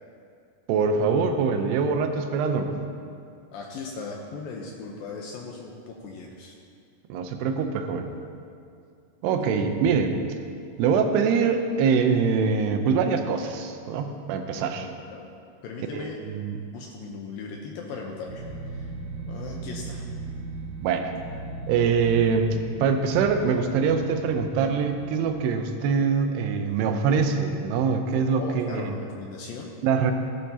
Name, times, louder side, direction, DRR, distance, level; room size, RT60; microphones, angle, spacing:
voice 1, 0.7-2.7 7.1-8.2 9.2-10.2 10.8-14.9 15.9-16.6 20.8-21.1 21.7-28.8 29.8-30.1, right 5 dB, 85° right, 6 dB, 2.8 m, -24 dB
voice 2, 3.5-6.6 9.5-9.7 14.5-15.3 15.6-16.2 16.7-18.9 19.3-20.1 28.4-29.7, left 4 dB, 75° left, 0 dB, 2.3 m, -38 dB
sound 1, 18.3-25.3, right 3 dB, 50° right, 1.9 m, -37 dB
16.5 x 11.5 x 2.9 m, 2.4 s
omnidirectional pair, 4.7 m